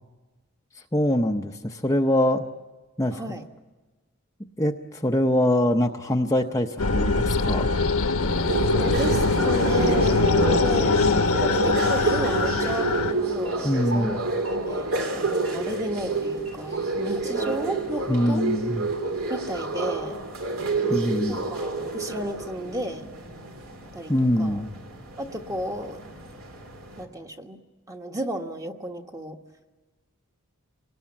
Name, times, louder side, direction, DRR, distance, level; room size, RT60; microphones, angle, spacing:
voice 1, 0.9-2.5 3.0-3.2 4.6-7.7 13.6-14.2 16.7-16.8 18.1-18.9 20.9-21.4 24.1-24.7, left 1 dB, 15° left, 2 dB, 0.7 m, -23 dB
voice 2, 3.1-3.5 8.8-14.2 14.5-14.9 15.1-18.4 19.3-20.2 21.3-23.1 23.9-24.1 24.4-24.6 25.2-26.0 27.0-27.6 27.9-29.4, right 1 dB, 15° right, 4 dB, 1.3 m, -33 dB
sound 1, 6.8-13.1, left 3 dB, 80° left, 1.2 m, -22 dB
sound 2, 8.3-27.0, right 3 dB, 70° right, 2.9 m, -29 dB
sound 3, 12.5-12.6 13.3-13.5 14.3-14.5 15.3-15.5 16.3-16.5 17.3-17.5, left 1 dB, 35° right, 2.6 m, -50 dB
26.0 x 19.0 x 8.6 m, 1.3 s
head